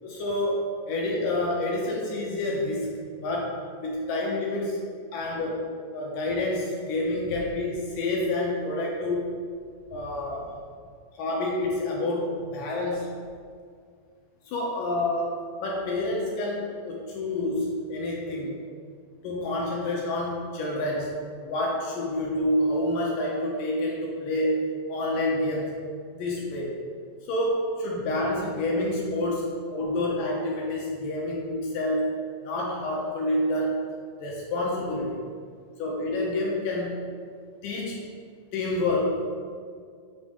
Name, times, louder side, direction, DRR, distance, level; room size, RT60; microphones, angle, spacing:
voice 1, 0.0-4.8 5.1-9.3 9.9-10.5 11.1-13.1 14.5-18.6 19.2-21.1 21.4-24.6 24.9-25.7 26.1-26.8 27.2-32.2 32.4-33.9 34.2-35.2 35.8-37.0 37.6-38.0 38.5-39.2, left 1 dB, 75° left, -3 dB, 2.2 m, -28 dB
7.7 x 4.0 x 3.6 m, 2.1 s
omnidirectional pair, 4.2 m